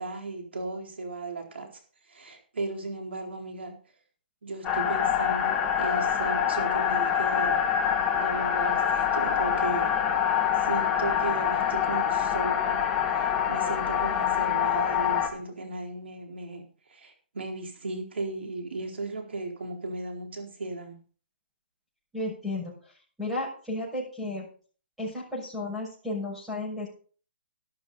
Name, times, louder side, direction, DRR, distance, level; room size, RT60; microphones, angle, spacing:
voice 1, 0.0-1.7 2.1-3.8 4.4-7.6 8.2-10.0 10.6-16.6 16.9-21.0, right 2 dB, 85° right, 3 dB, 4.1 m, -36 dB
sound 1, 4.6-15.3, left 8 dB, 15° left, 1.6 m, -25 dB
voice 2, 22.1-22.7 23.2-24.5 25.0-26.9, left 2 dB, ahead, -5 dB, 6.4 m, -33 dB
12.5 x 11.5 x 4.0 m, 0.41 s
hypercardioid pair, 155°, 6 cm